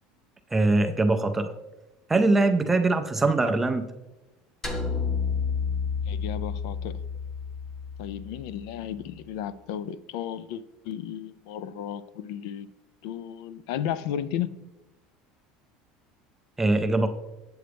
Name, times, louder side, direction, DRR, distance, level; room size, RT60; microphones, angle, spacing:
voice 1, 0.5-1.5 2.1-3.8 16.6-17.1, right 2 dB, 10° right, 7 dB, 0.4 m, -22 dB
sound 1, 4.6-9.0, left 5 dB, 10° left, 0.8 m, -31 dB
voice 2, 6.1-7.0 8.0-12.7 13.0-14.5, left 10 dB, 70° left, 15 dB, 0.4 m, -34 dB
7.9 x 7.6 x 3.4 m, 1.0 s
cardioid pair, 170°, 3 cm